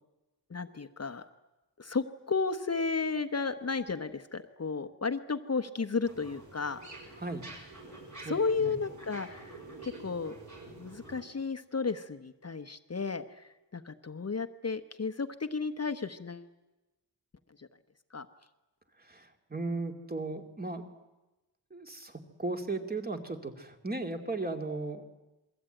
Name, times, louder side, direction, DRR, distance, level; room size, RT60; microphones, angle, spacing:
voice 1, 0.5-1.3 1.8-7.1 8.2-10.3 10.8-16.5 17.6-17.7 18.1-18.3, left 4 dB, 35° left, 9 dB, 1.0 m, -33 dB
sound 1, 6.0-11.2, right 2 dB, 40° right, 7.9 m, -48 dB
voice 2, 7.2-7.5 8.2-8.8 19.0-20.8 21.7-25.0, right 3 dB, 20° right, 5 dB, 2.4 m, -36 dB
28.0 x 22.5 x 9.0 m, 1.1 s
wide cardioid pair, 160°, 44 cm